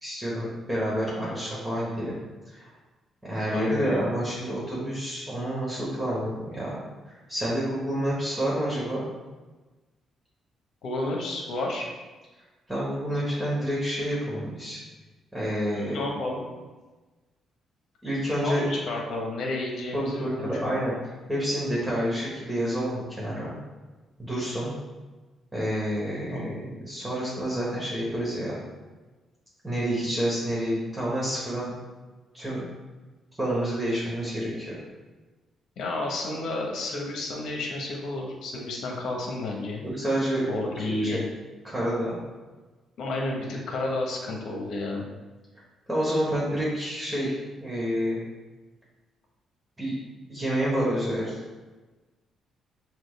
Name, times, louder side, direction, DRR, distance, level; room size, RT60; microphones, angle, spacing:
voice 1, 0.0-2.1 2.5-2.7 3.2-6.7 7.1-9.0 12.7-14.8 15.3-16.0 18.0-18.6 19.9-20.9 21.3-23.5 24.2-24.7 25.5-28.6 29.6-31.7 32.3-32.6 33.4-34.8 39.8-40.4 41.0-41.2 41.6-42.2 45.9-48.2 49.8-49.9 50.3-51.3, equal, 10° right, -6 dB, 1.4 m, -28 dB
voice 2, 3.5-4.1 10.8-11.9 15.7-16.5 18.4-20.8 26.3-26.6 35.8-39.8 40.5-41.2 43.0-45.0, left 2 dB, 70° left, 0 dB, 1.0 m, -31 dB
6.1 x 2.4 x 3.3 m, 1.2 s
cardioid pair, 90°, 0 cm